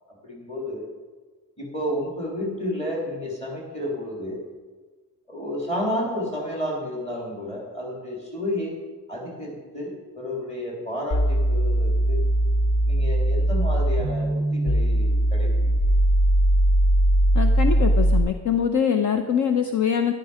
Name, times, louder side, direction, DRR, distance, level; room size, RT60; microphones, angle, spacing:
voice 1, 0.1-0.9 1.6-4.4 5.3-8.8 9.1-12.2 12.9-15.7, left 1 dB, 15° left, -2 dB, 3.5 m, -31 dB
sound 1, 11.1-18.2, right 1 dB, 70° left, 2.4 m, -20 dB
voice 2, 17.3-20.1, left 7 dB, 50° left, 7 dB, 0.8 m, -23 dB
13.0 x 11.0 x 5.0 m, 1.3 s
wide cardioid pair, 170°, 38 cm